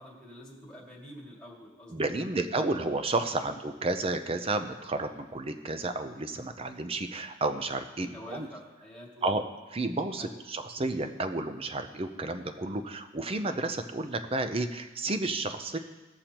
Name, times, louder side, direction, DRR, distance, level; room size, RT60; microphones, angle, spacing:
voice 1, 0.0-2.0 2.3-2.8 3.3-3.5 8.0-9.2 10.2-10.4, equal, 5° left, -5 dB, 2.3 m, -47 dB
voice 2, 1.9-8.5 9.2-9.4 9.7-15.8, right 2 dB, 30° right, 8 dB, 0.6 m, -31 dB
19.0 x 6.6 x 2.9 m, 1.2 s
head